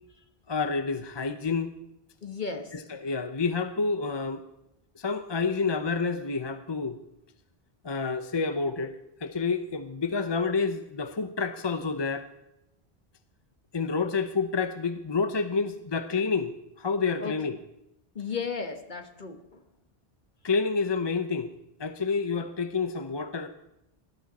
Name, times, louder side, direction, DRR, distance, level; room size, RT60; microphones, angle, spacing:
voice 1, 0.5-1.7 2.7-4.4 5.0-7.0 7.8-12.3 13.7-17.6 20.4-21.5 21.8-23.5, left 4 dB, 30° left, 9 dB, 0.6 m, -29 dB
voice 2, 2.2-2.7 17.2-17.4 18.1-19.6 22.3-22.4, left 5 dB, 50° left, 6 dB, 1.5 m, -35 dB
19.5 x 12.0 x 4.2 m, 0.86 s
omnidirectional pair, 1.0 m